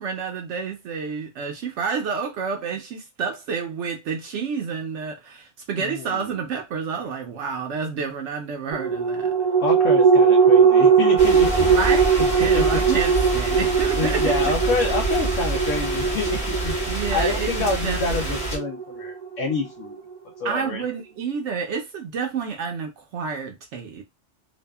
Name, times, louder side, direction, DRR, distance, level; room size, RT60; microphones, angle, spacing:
voice 1, 0.0-9.3 11.7-14.5 16.9-18.4 20.4-24.0, right 6 dB, 70° right, 0.8 m, -29 dB
voice 2, 5.8-6.4 9.5-11.5 12.2-12.7 14.0-16.7 17.1-20.0 20.4-20.8, left 3 dB, 80° left, 1.0 m, -27 dB
sound 1, 8.7-19.5 19.9-20.0, right 6 dB, 35° right, 0.6 m, -20 dB
sound 2, 11.2-18.6, right 1 dB, 10° left, 1.1 m, -28 dB
2.7 x 2.3 x 2.2 m
omnidirectional pair, 1.3 m